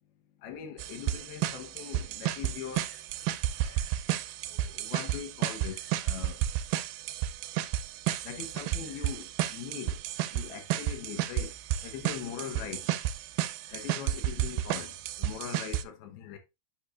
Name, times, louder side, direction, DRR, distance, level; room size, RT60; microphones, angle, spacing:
voice 1, 0.4-3.0 3.6-3.9 4.5-6.4 8.2-10.0 10.3-11.5 11.8-12.9 13.7-14.9 15.2-16.4, left 9 dB, 80° left, 2.8 m, -41 dB
sound 1, 0.8-15.8, right 12 dB, 80° right, 2.1 m, -32 dB
10.0 x 5.0 x 2.4 m
omnidirectional pair, 4.5 m